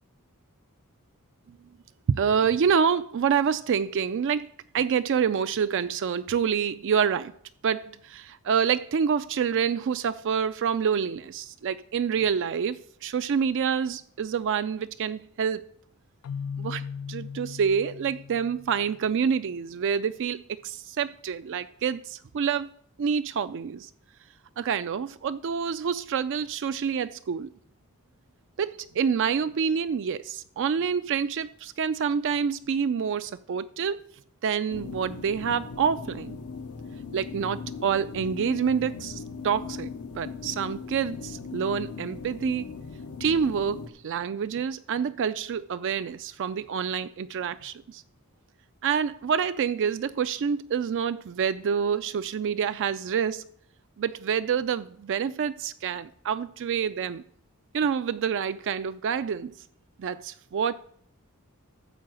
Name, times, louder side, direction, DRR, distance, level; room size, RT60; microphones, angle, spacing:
voice 1, 2.1-7.3 7.6-15.7 16.6-22.7 23.0-23.9 24.6-27.5 28.6-34.0 34.4-36.4 37.1-42.7 43.2-48.0 48.8-53.4 54.0-57.2 57.7-59.5 60.0-60.7, right 7 dB, 55° right, 0.4 m, -27 dB
Keyboard (musical), 16.2-19.1, left 6 dB, 70° left, 0.3 m, -38 dB
sound 1, 34.7-43.9, left 5 dB, 85° left, 0.9 m, -39 dB
13.5 x 4.7 x 7.5 m
head